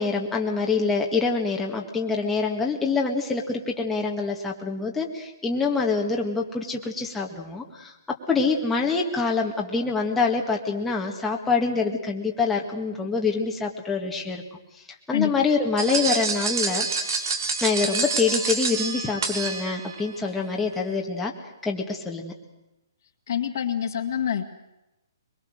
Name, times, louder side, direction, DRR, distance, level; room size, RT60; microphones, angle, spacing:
voice 1, 0.0-7.9 8.3-14.4 15.1-16.9 17.6-21.3 21.6-22.3, left 4 dB, 5° left, -1 dB, 1.8 m, -25 dB
sound 1, 15.8-20.0, right 4 dB, 65° right, 3.4 m, -27 dB
voice 2, 23.3-24.4, left 9 dB, 55° left, 4 dB, 2.0 m, -26 dB
23.0 x 22.5 x 6.6 m, 0.95 s
hypercardioid pair, 150°, 2 cm